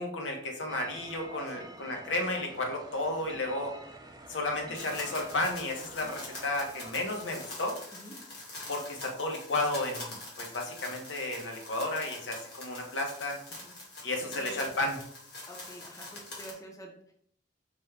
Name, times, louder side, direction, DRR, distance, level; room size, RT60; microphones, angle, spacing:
voice 1, 0.0-3.8 4.3-7.8 8.7-13.4 14.0-14.9, left 2 dB, 90° left, 2 dB, 0.8 m, -33 dB
sound 1, 0.7-7.7, right 1 dB, 20° right, 0.4 m, -48 dB
voice 2, 1.6-1.9 7.9-8.2 13.5-13.7 14.0-14.6 15.5-17.1, right 1 dB, 20° left, 0 dB, 0.6 m, -48 dB
sound 2, 4.8-16.5, left 2 dB, 60° left, 1.5 m, -45 dB
5.1 x 2.2 x 3.3 m, 0.66 s
head